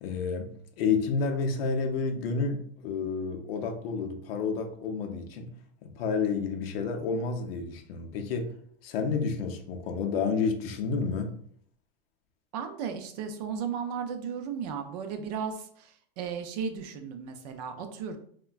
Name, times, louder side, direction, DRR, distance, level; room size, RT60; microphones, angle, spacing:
voice 1, 0.0-5.5 5.8-8.5 8.8-11.4, left 5 dB, 65° left, 4 dB, 0.6 m, -30 dB
voice 2, 12.5-18.2, right 7 dB, 40° right, 6 dB, 0.4 m, -35 dB
3.2 x 2.1 x 2.3 m, 0.62 s
supercardioid pair, 155°, 31 cm